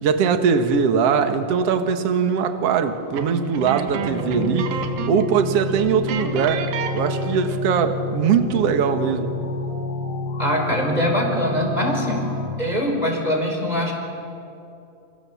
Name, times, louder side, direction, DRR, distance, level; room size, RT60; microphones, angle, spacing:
voice 1, 0.0-4.8 5.1-6.7 6.9-9.4, right 6 dB, 60° right, 7 dB, 1.7 m, -21 dB
sound 1, 3.1-5.3 5.6-5.7 6.1-7.7, right 7 dB, 75° right, 3.7 m, -30 dB
sound 2, 4.0-12.5, left 2 dB, 85° left, 5.5 m, -29 dB
voice 2, 10.4-12.3 12.6-13.9, equal, 10° right, 1 dB, 4.7 m, -23 dB
29.0 x 28.5 x 7.1 m, 2.7 s
omnidirectional pair, 4.9 m